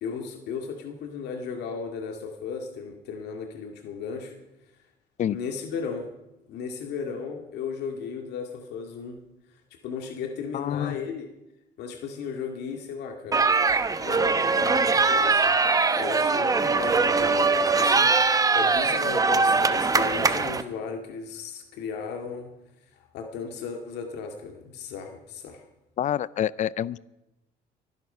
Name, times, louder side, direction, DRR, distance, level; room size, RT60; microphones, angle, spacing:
voice 1, 0.0-4.3 5.3-6.1 6.5-9.2 9.8-11.3 11.8-15.6 16.0-22.5 22.9-25.7, left 6 dB, 80° left, 4 dB, 2.1 m, -36 dB
voice 2, 10.5-11.0 26.0-27.0, left 10 dB, 45° left, 21 dB, 0.5 m, -27 dB
sound 1, 13.3-20.6, right 4 dB, 20° right, 0.9 m, -22 dB
23.5 x 11.0 x 5.5 m, 0.95 s
cardioid pair, 110°, 17 cm